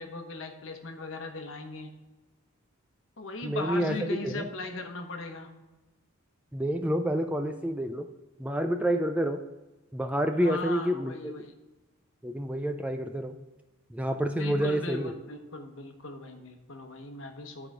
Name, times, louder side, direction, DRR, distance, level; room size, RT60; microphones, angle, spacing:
voice 1, 0.0-1.9 3.2-5.5 10.3-11.5 14.4-17.7, left 2 dB, 60° left, 5 dB, 1.0 m, -38 dB
voice 2, 3.4-4.5 6.5-8.1 8.4-9.4 9.9-11.1 12.2-13.4 13.9-15.1, equal, 5° right, 6 dB, 0.3 m, -28 dB
11.5 x 4.8 x 4.9 m, 1.1 s
head